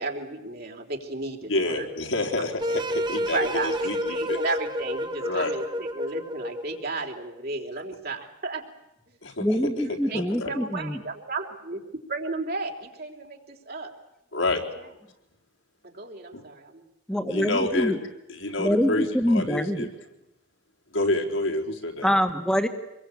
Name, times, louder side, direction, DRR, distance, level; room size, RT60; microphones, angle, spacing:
voice 1, 0.0-1.9 3.2-8.7 9.1-9.2 9.9-11.8 12.1-13.9 15.8-17.3, right 3 dB, 50° right, 2 dB, 3.7 m, -34 dB
voice 2, 1.5-4.4 5.2-5.5 9.2-9.5 10.1-10.5 14.3-14.6 16.3-16.4 17.3-18.0 18.3-19.9 20.9-22.1, left 2 dB, 75° left, 1 dB, 4.1 m, -28 dB
sound 1, 2.6-6.9, equal, 20° right, 1.2 m, -30 dB
voice 3, 9.4-11.0 17.1-18.0 18.6-19.9 22.0-22.7, equal, 5° left, 4 dB, 1.7 m, -25 dB
26.0 x 22.0 x 8.6 m, 0.88 s
head